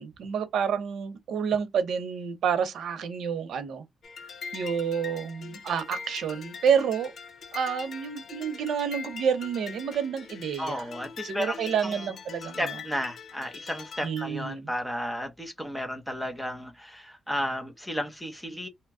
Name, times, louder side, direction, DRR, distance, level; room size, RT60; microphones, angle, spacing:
voice 1, 0.0-3.8 4.5-7.1 7.5-10.8 11.2-12.8 14.0-14.7, right 7 dB, 80° right, 0.7 m, -29 dB
sound 1, 4.0-14.3, left 5 dB, 60° left, 0.6 m, -42 dB
voice 2, 10.6-12.1 12.6-18.7, equal, ahead, 0.8 m, -33 dB
2.9 x 2.2 x 3.6 m
cardioid pair, 115°, 0 cm